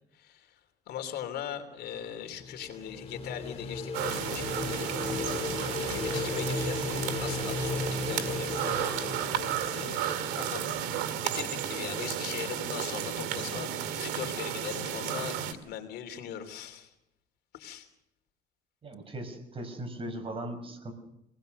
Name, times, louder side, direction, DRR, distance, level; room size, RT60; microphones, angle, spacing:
voice 1, 0.1-0.6 0.9-5.2 5.9-6.8 7.2-9.1 9.7-16.9 17.5-17.9, left 9 dB, 70° left, 7 dB, 3.2 m, -40 dB
sound 1, 2.0-10.8, left 4 dB, 35° left, 3.1 m, -36 dB
sound 2, 3.9-15.5, right 9 dB, 90° right, 2.3 m, -33 dB
voice 2, 18.8-20.9, right 1 dB, 35° right, 6 dB, 5.4 m, -38 dB
26.0 x 19.5 x 6.7 m, 0.82 s
cardioid pair, 110°, 17 cm